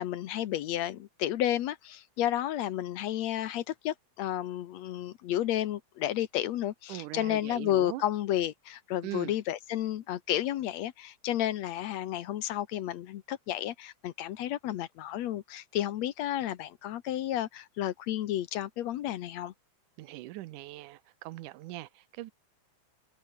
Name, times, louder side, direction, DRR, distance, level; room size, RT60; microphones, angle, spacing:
voice 1, 0.0-19.5, left 12 dB, 70° left, 2.0 m, -32 dB
voice 2, 6.9-8.0 9.0-9.3 20.0-22.3, right 17 dB, 90° right, 2.3 m, -41 dB
open air
omnidirectional pair, 3.5 m